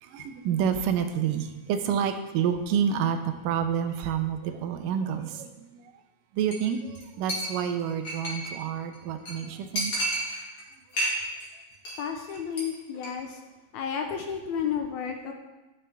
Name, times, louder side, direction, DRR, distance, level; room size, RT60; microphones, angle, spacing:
voice 1, 0.0-5.9 6.3-9.9, right 8 dB, 85° right, 8 dB, 2.4 m, -28 dB
Chink clink, 6.5-6.7 6.9-7.0 7.3-8.6 8.9-9.0 9.3-9.4 9.8-10.6 10.9-11.5 11.7-12.0 12.3-12.6 12.9-13.1, right 1 dB, 50° left, 3.0 m, -31 dB
voice 2, 12.0-13.4 13.7-15.3, left 7 dB, 75° left, 4 dB, 1.9 m, -32 dB
10.0 x 9.8 x 3.4 m, 1.1 s
omnidirectional pair, 3.8 m